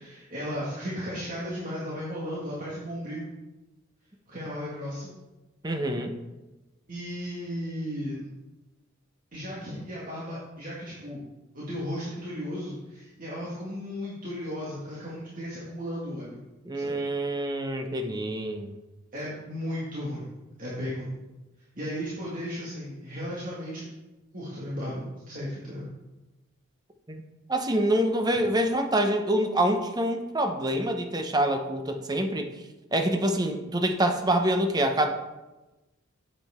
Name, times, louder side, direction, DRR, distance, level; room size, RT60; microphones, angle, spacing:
voice 1, 0.0-3.3 4.3-5.1 6.9-8.3 9.3-11.2 11.5-16.4 16.7-17.0 19.1-20.3 20.6-21.1 21.8-23.9 24.3-25.9, equal, 45° right, -7 dB, 1.9 m, -35 dB
voice 2, 5.6-6.2 16.6-18.8 27.1-27.2 27.5-32.5 32.9-35.1, right 1 dB, 20° right, 5 dB, 0.9 m, -26 dB
9.6 x 7.5 x 3.6 m, 1.1 s
head